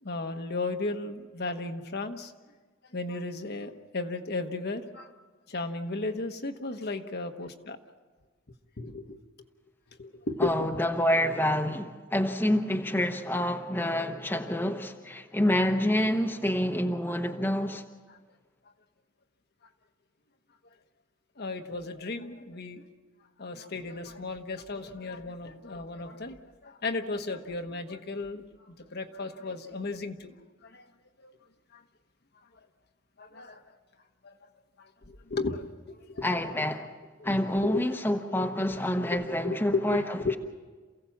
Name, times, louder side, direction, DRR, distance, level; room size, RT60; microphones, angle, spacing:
voice 1, 0.0-2.3 2.9-5.1 5.5-7.8 8.8-9.2 10.0-10.5 18.1-18.2 21.4-22.8 23.4-30.3 30.6-30.8 31.2-31.3 31.7-31.8 33.2-33.6 34.2-34.3 34.8-36.2 37.2-37.8 38.3-38.8 39.1-40.3, left 3 dB, 55° left, 1.2 m, -35 dB
voice 2, 10.4-17.8 36.2-36.9 37.2-40.4, left 1 dB, 10° left, 0.9 m, -27 dB
28.5 x 16.0 x 7.2 m
head